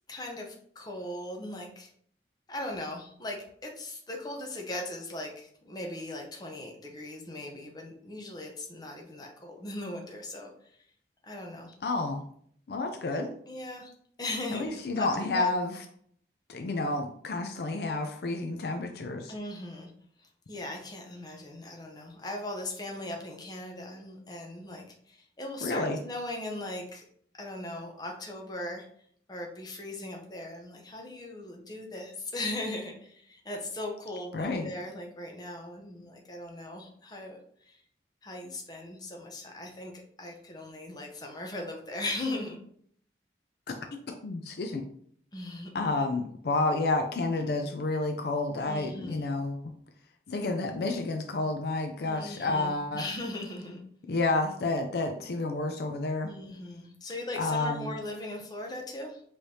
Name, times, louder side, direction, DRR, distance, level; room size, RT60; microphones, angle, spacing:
voice 1, 0.1-1.9 2.5-10.5 11.2-11.8 13.5-13.9 14.2-15.1 15.3-15.5 19.3-19.9 20.5-27.0 27.4-28.9 29.3-37.4 37.6-37.8 38.2-39.9 40.2-42.6 45.3-45.8 48.7-49.3 52.0-53.8 56.2-59.2, left 1 dB, 25° left, 1 dB, 0.7 m, -39 dB
voice 2, 11.8-12.2 12.7-13.3 14.5-15.8 16.5-19.3 25.6-26.0 34.3-34.7 43.7-43.8 44.2-44.8 45.7-49.6 50.3-53.0 54.1-56.3 57.4-57.9, left 2 dB, 60° left, 5 dB, 0.4 m, -30 dB
4.7 x 3.2 x 2.7 m, 0.62 s
head